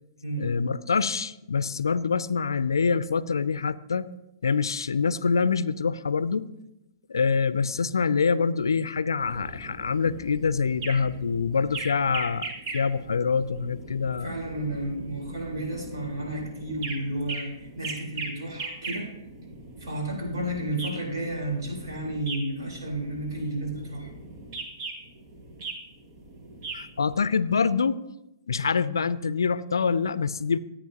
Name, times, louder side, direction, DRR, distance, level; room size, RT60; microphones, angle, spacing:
voice 1, 0.4-4.1 4.4-6.5 7.1-14.3 26.7-28.0 28.5-30.6, left 5 dB, 85° left, 17 dB, 0.4 m, -25 dB
sound 1, 9.2-27.3, right 3 dB, 55° right, 1.9 m, -40 dB
voice 2, 14.2-19.1 19.8-24.1, right 1 dB, 75° right, -1 dB, 4.1 m, -32 dB
15.0 x 8.8 x 2.9 m, 0.90 s
hypercardioid pair, 125°, 2 cm